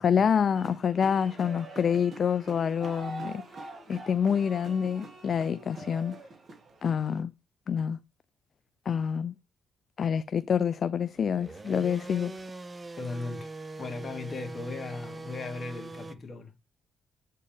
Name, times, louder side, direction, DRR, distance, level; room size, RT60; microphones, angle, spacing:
voice 1, 0.0-3.4 3.9-6.2 6.8-7.3 7.7-8.0 8.9-9.4 10.0-12.4, left 7 dB, 50° left, 0.4 m, -27 dB
sound 1, 0.5-7.2, right 2 dB, 40° right, 2.1 m, -45 dB
sound 2, 11.2-16.1, right 2 dB, 25° right, 0.7 m, -42 dB
voice 2, 13.0-13.5 13.8-16.5, left 3 dB, 35° left, 2.3 m, -37 dB
8.3 x 4.4 x 3.4 m
cardioid pair, 90°, 0 cm